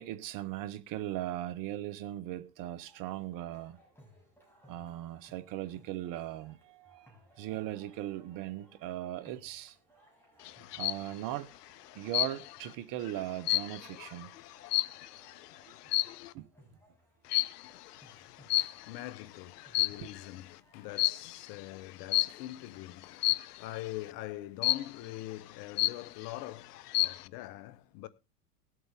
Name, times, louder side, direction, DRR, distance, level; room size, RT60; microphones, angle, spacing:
voice 1, 0.0-3.8 4.7-7.1 7.4-9.8 10.8-11.5 11.9-14.3 16.3-16.5 20.0-20.1, right 13 dB, 40° right, 1.0 m, -38 dB
sound 1, 2.8-21.2, equal, 5° left, 6.3 m, -63 dB
sound 2, 10.5-11.1 12.1-12.7 13.1-15.3 15.9-16.3 17.3-17.7 18.5-19.1 19.6-20.3 21.0-21.3 22.1-22.5 23.2-23.6 24.6-25.1 25.5-25.6 25.8-26.4 26.8-27.3, left 16 dB, 70° left, 0.6 m, -30 dB
voice 2, 17.7-28.1, left 15 dB, 50° left, 1.1 m, -44 dB
19.5 x 8.0 x 3.6 m
hypercardioid pair, 105°, 48 cm